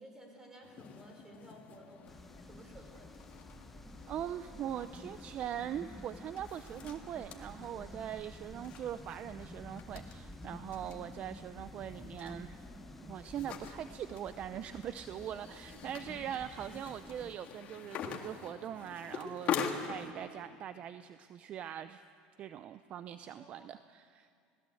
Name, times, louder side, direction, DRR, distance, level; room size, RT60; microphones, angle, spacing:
voice 1, 0.0-3.1 15.6-15.9 23.4-23.7, right 1 dB, 15° right, 3 dB, 5.1 m, -55 dB
sound 1, 0.6-20.1, left 7 dB, 45° left, 1.9 m, -45 dB
sound 2, 2.1-17.3, left 1 dB, 5° left, 0.9 m, -51 dB
voice 2, 4.1-12.6 13.0-22.0 22.4-24.3, right 10 dB, 45° right, 12 dB, 0.6 m, -42 dB
21.0 x 18.0 x 7.8 m, 2.3 s
supercardioid pair, 120°, 3 cm